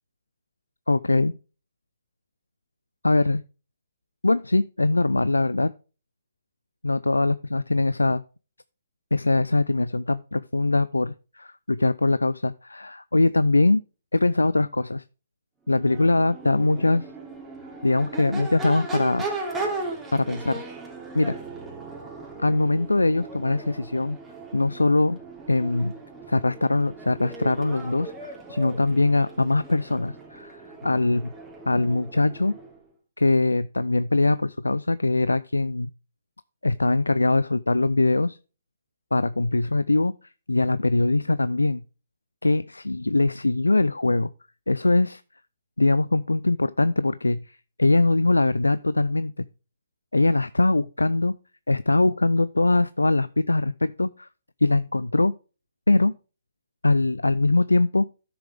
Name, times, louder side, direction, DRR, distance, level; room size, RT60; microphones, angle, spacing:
voice 1, 0.9-1.3 3.0-3.4 4.2-5.7 6.8-8.2 9.1-13.8 14.1-15.0 15.7-17.1 17.8-19.3 20.1-20.6 21.1-21.4 22.4-24.2 24.5-25.2 25.5-25.9 26.3-31.3 31.7-32.5 33.2-35.9 36.6-38.4 39.1-41.8 42.4-44.3 44.7-45.2 45.8-49.5 50.1-51.3 51.7-54.3 54.6-55.3 55.9-56.2 56.8-58.1, left 2 dB, 90° left, 0.4 m, -22 dB
Crowd / Race car auto racing / Accelerating revving vroom, 15.7-32.8, right 3 dB, 10° right, 2.9 m, -37 dB
12.5 x 6.9 x 3.4 m
figure-of-eight pair, 130°, 0 cm